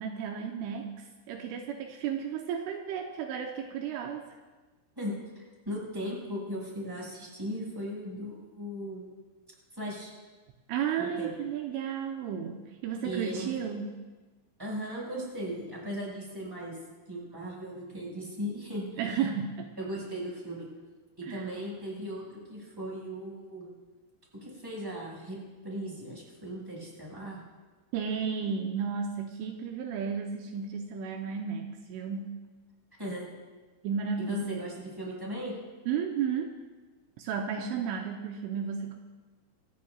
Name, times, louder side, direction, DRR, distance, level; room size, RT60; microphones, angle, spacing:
voice 1, 0.0-4.2 10.7-13.9 19.0-19.8 21.3-21.5 27.9-32.3 33.8-34.5 35.9-36.6 37.2-39.0, right 7 dB, 80° right, 2 dB, 3.1 m, -33 dB
voice 2, 4.9-9.0 9.7-10.1 11.0-11.3 13.0-13.5 14.6-16.8 17.1-19.3 19.8-20.7 21.2-23.7 24.3-27.4 33.0-33.4 34.2-35.5, equal, 5° right, -4 dB, 4.8 m, -37 dB
26.0 x 14.0 x 2.4 m, 1.3 s
omnidirectional pair, 5.8 m